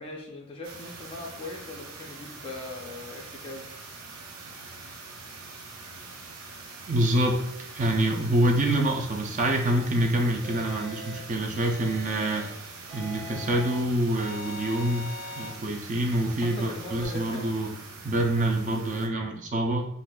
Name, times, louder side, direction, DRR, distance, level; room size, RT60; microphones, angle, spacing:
voice 1, 0.0-3.7 16.3-17.5, left 2 dB, 25° left, -1 dB, 0.3 m, -40 dB
sound 1, 0.6-19.1, right 3 dB, 80° right, 0.6 m, -44 dB
voice 2, 6.9-12.4 12.9-17.7 18.0-19.9, right 1 dB, 35° right, 2 dB, 0.4 m, -26 dB
sound 2, 10.4-11.2 11.6-12.5 12.9-13.8 14.2-15.5, left 1 dB, 50° right, 1.3 m, -41 dB
3.8 x 2.5 x 2.2 m, 0.74 s
head